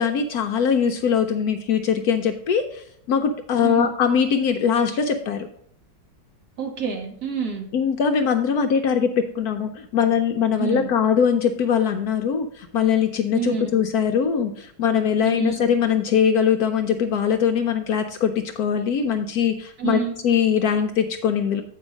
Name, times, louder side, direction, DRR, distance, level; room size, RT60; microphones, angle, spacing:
voice 1, 0.0-5.5 7.7-21.6, left 7 dB, 70° left, 6 dB, 1.0 m, -21 dB
voice 2, 6.6-7.7 10.6-10.9 13.3-13.7 15.2-15.5 19.8-20.2, right 6 dB, 60° right, 2 dB, 1.7 m, -27 dB
8.1 x 4.8 x 5.1 m, 0.67 s
omnidirectional pair, 2.0 m